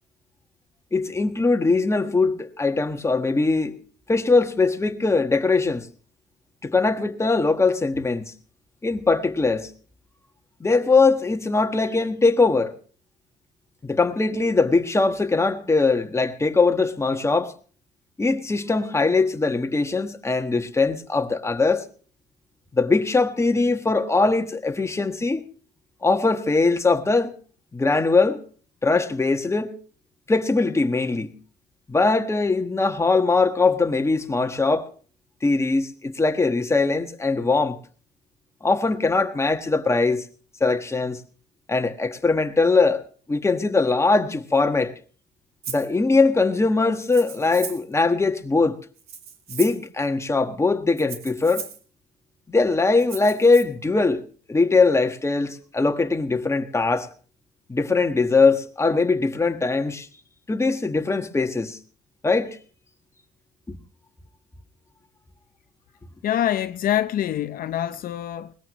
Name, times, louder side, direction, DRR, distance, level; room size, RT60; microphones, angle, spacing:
voice 1, 0.9-3.8 4.1-5.9 6.6-8.3 8.8-9.7 10.6-12.7 13.8-17.5 18.2-21.9 22.7-25.5 26.0-27.3 27.7-28.4 28.8-29.7 30.3-31.3 31.9-34.9 35.4-37.8 38.6-40.2 40.6-41.2 41.7-43.0 43.3-44.9 45.7-48.8 49.5-51.7 52.5-54.2 54.5-57.1 57.7-60.1 60.5-61.8 62.2-62.6 63.7-63.8, left 3 dB, 15° left, 1.4 m, -21 dB
Rattle (instrument), 45.6-45.9 47.0-47.9 49.0-49.9 51.0-51.8 53.0-53.6, right 7 dB, 70° right, 2.2 m, -37 dB
voice 2, 66.2-68.5, left 11 dB, 55° left, 0.6 m, -25 dB
21.0 x 19.5 x 3.1 m
cardioid pair, 110°, 17 cm